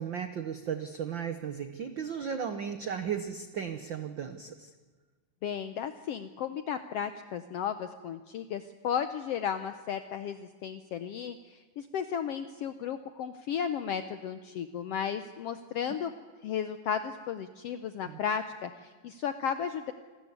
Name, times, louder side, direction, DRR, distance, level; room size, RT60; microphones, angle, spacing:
voice 1, 0.0-4.7 18.1-18.2, right 7 dB, 85° right, 9 dB, 1.0 m, -35 dB
voice 2, 5.4-16.1 16.4-19.9, left 8 dB, 80° left, 10 dB, 1.4 m, -34 dB
27.5 x 13.5 x 9.6 m, 1.4 s
omnidirectional pair, 3.7 m